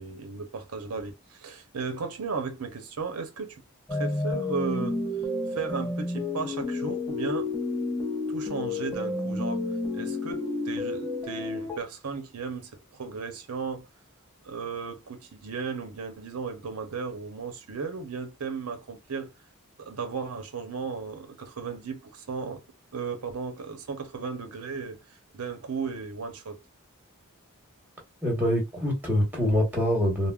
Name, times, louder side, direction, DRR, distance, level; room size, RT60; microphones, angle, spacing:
voice 1, 0.0-3.6 3.9-5.0 5.5-7.5 8.3-9.6 9.9-13.9 14.4-19.3 19.8-22.6 22.9-26.6, right 5 dB, 85° right, 0.7 m, -35 dB
sound 1, 3.9-11.8, left 2 dB, 10° left, 0.6 m, -30 dB
voice 2, 28.2-30.3, equal, 10° right, 1.1 m, -25 dB
3.5 x 2.0 x 2.3 m
head